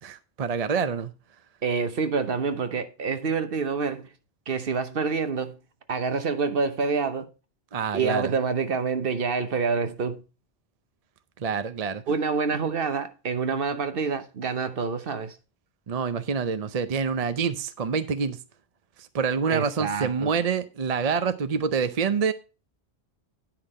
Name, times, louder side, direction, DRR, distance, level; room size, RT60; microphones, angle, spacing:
voice 1, 0.0-1.1 7.7-8.3 11.4-12.0 15.9-18.4 19.0-22.3, right 6 dB, 40° right, 0.6 m, -27 dB
voice 2, 1.6-4.1 4.5-5.6 5.9-7.3 7.9-10.2 12.1-15.3 19.5-20.3, right 5 dB, 60° right, 1.1 m, -27 dB
10.0 x 5.8 x 4.2 m
omnidirectional pair, 1.1 m